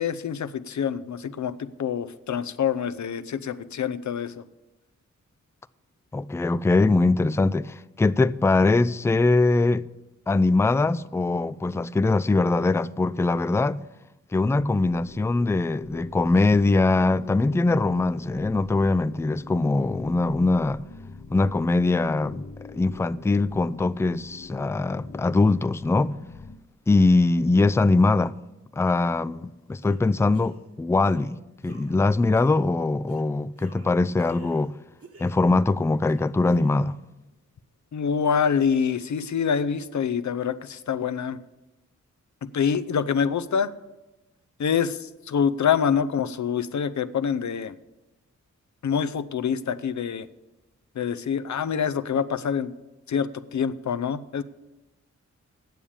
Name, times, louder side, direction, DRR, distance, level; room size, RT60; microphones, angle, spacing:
voice 1, 0.0-4.4 37.9-41.4 42.4-43.7 44.6-47.8 48.8-50.3 51.0-52.7 53.1-54.4, left 7 dB, 65° left, 0.6 m, -26 dB
voice 2, 6.1-9.9 10.3-13.8 14.3-20.8 21.3-26.2 26.9-28.3 28.7-31.4 31.6-34.7 35.2-37.0, left 3 dB, 10° left, 0.3 m, -22 dB
sound 1, 14.5-26.6, left 3 dB, 35° left, 0.8 m, -44 dB
sound 2, 29.8-30.0 30.3-30.7 31.0-31.3 31.6-32.0 32.3-32.6 33.1-33.3 33.6-34.7 35.0-35.6 36.1-37.0, right 3 dB, 50° right, 1.5 m, -49 dB
9.1 x 7.1 x 8.6 m
cardioid pair, 55°, 31 cm